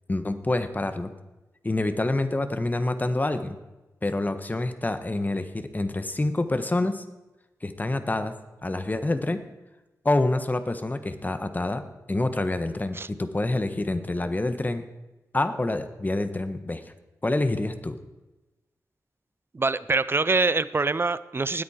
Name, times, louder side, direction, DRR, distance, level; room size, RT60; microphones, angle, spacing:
voice 1, 0.1-1.1 1.6-3.6 4.0-7.0 7.6-8.3 8.6-9.4 10.0-11.8 12.1-14.9 15.3-16.8 17.2-18.0, left 2 dB, 25° left, 9 dB, 1.3 m, -27 dB
voice 2, 19.5-21.6, right 3 dB, 35° right, 16 dB, 0.6 m, -24 dB
19.5 x 8.6 x 4.4 m, 1.1 s
cardioid pair, 60°, 6 cm